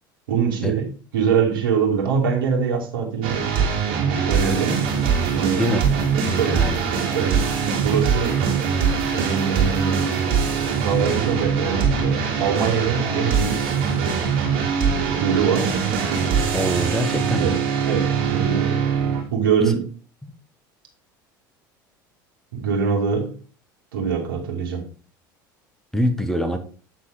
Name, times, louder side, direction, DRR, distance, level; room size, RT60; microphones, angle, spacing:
voice 1, 0.3-0.8 1.1-3.5 4.2-4.8 5.3-5.7 6.4-6.7 7.1-7.5 7.8-8.4 9.1-10.0 10.8-13.7 14.5-15.8 17.4-17.6 17.8-18.8 19.3-19.8 22.5-23.3 23.9-24.8, right 6 dB, 80° right, 2.2 m, -23 dB
sound 1, 3.2-19.2, right 6 dB, 65° right, 2.8 m, -22 dB
voice 2, 6.3-6.8 16.5-17.6 19.6-19.7 20.2-20.3 25.9-26.6, equal, 5° left, 1.6 m, -24 dB
8.6 x 4.0 x 5.0 m
hypercardioid pair, 75°, 11 cm